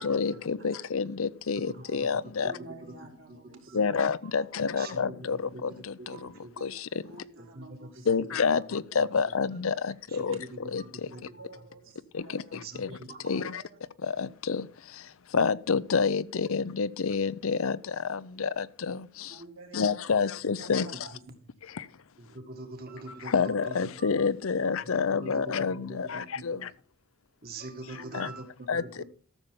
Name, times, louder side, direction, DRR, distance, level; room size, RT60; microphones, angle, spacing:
voice 1, 0.0-2.5 3.7-7.0 8.1-10.4 10.7-11.3 12.1-12.9 13.2-13.6 14.0-19.4 19.7-20.9 21.6-21.9 23.2-26.7 27.9-28.3 28.7-29.0, left 5 dB, 70° left, 0.6 m, -29 dB
voice 2, 1.7-2.1 2.4-2.5 2.9-3.0 3.7-3.8 4.8-5.2 5.5-6.8 7.5-8.0 8.5-8.6 10.1-10.6 10.9-11.2 12.5-13.2 22.2-24.1 25.1-25.5 25.9-26.5 27.4-29.0, right 2 dB, 45° right, 1.9 m, -43 dB
voice 3, 2.4-3.9 4.4-4.8 7.0-8.3 10.3-10.5 10.9-13.8 19.3-21.2 21.6-21.7 23.1-23.2 24.6-24.7 25.2-25.3 25.7-25.9 26.2-26.3 27.9-28.3 29.0-29.1, right 2 dB, 60° right, 2.7 m, -51 dB
13.5 x 7.0 x 5.3 m
head